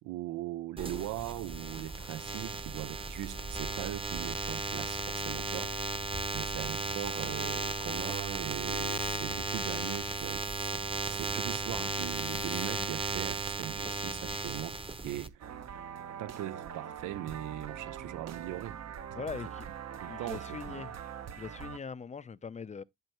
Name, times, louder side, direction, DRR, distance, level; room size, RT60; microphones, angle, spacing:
voice 1, 0.0-5.8 6.3-15.6 16.2-18.8 20.0-20.8, right 15 dB, 80° right, 0.5 m, -40 dB
sound 1, 0.8-15.3, right 3 dB, 20° right, 0.8 m, -35 dB
sound 2, 15.4-21.8, right 8 dB, 60° right, 0.9 m, -43 dB
voice 2, 19.1-19.7 20.0-21.0 21.3-22.8, left 5 dB, 25° left, 0.5 m, -41 dB
10.5 x 4.4 x 2.9 m
cardioid pair, 90°, 30 cm